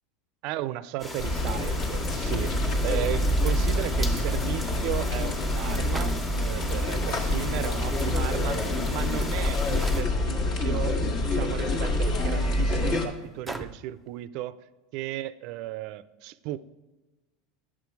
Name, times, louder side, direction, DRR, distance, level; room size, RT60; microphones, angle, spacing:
voice 1, 0.4-14.6 14.9-16.6, right 14 dB, 55° right, 16 dB, 0.5 m, -35 dB
sound 1, 1.0-10.0, left 1 dB, 20° left, 1.4 m, -37 dB
sound 2, 1.2-13.1, left 1 dB, 40° left, 1.5 m, -26 dB
sound 3, 5.9-6.7 7.7-7.8 8.5-8.8 9.8-10.3 11.6-11.7 12.4-12.5 13.5-14.0, right 1 dB, ahead, 0.5 m, -38 dB
10.0 x 7.6 x 4.6 m, 1.1 s
supercardioid pair, 145°, 0 cm